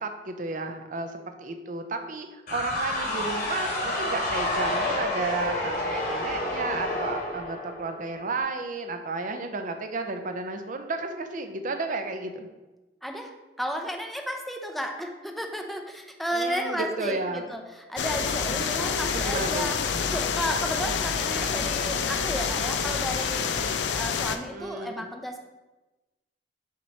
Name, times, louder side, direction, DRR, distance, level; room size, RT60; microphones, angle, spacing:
voice 1, 0.0-1.1 1.4-12.5 16.3-17.4 18.8-19.8 24.5-25.1, right 3 dB, 50° right, 6 dB, 0.6 m, -33 dB
sound 1, 2.5-8.2, left 1 dB, 55° left, 1.6 m, -29 dB
voice 2, 13.0-19.8 20.0-25.4, equal, ahead, 3 dB, 0.6 m, -33 dB
sound 2, 18.0-24.4, left 6 dB, 90° left, 0.5 m, -27 dB
5.9 x 3.0 x 5.4 m, 1.1 s
head